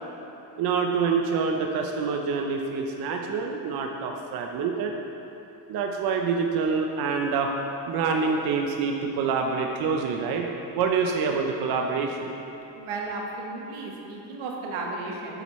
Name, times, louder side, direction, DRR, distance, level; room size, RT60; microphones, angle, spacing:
voice 1, 0.6-4.9 5.7-7.5 7.9-10.5 10.7-12.3, right 5 dB, 50° right, 2 dB, 0.6 m, -26 dB
voice 2, 12.7-15.4, right 3 dB, 85° right, 0 dB, 1.3 m, -34 dB
8.5 x 7.9 x 3.1 m, 3.0 s
cardioid pair, 145°, 47 cm